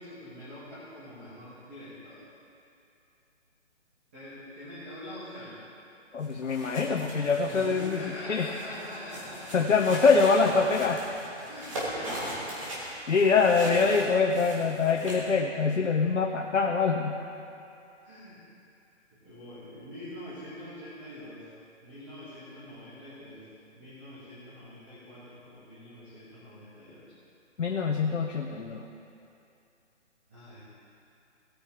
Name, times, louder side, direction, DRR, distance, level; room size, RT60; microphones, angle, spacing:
voice 1, 0.0-2.2 4.1-5.6 7.4-9.9 11.4-12.4 18.0-18.4 19.2-21.5 21.8-23.5 23.7-27.0 30.3-30.6, left 1 dB, 10° right, -13 dB, 1.2 m, -44 dB
voice 2, 6.1-8.5 9.5-11.0 13.1-17.2 27.6-28.9, left 4 dB, 85° left, 2 dB, 1.0 m, -24 dB
sound 1, 6.2-15.3, right 1 dB, 25° right, 2.0 m, -39 dB
17.5 x 9.0 x 3.8 m, 2.7 s
hypercardioid pair, 175°, 37 cm